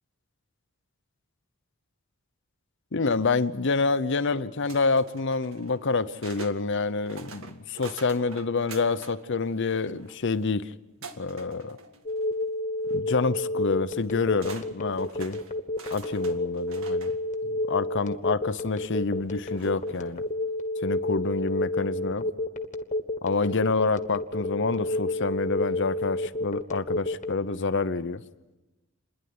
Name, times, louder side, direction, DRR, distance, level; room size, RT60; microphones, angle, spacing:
voice 1, 2.9-10.7 11.2-11.8 12.9-15.4 15.9-17.1 17.6-20.2 20.8-22.2 23.2-28.2, left 4 dB, 60° left, 0.8 m, -27 dB
sound 1, 4.7-6.6 7.0-9.2 9.5-10.4 11.0-12.4 12.8-13.0 14.0-14.1 14.4-17.2 18.0-18.1 19.5-20.2, right 4 dB, 80° right, 1.8 m, -45 dB
Telephone, 12.1-27.3, left 2 dB, 35° left, 1.4 m, -29 dB
29.0 x 11.0 x 9.6 m
head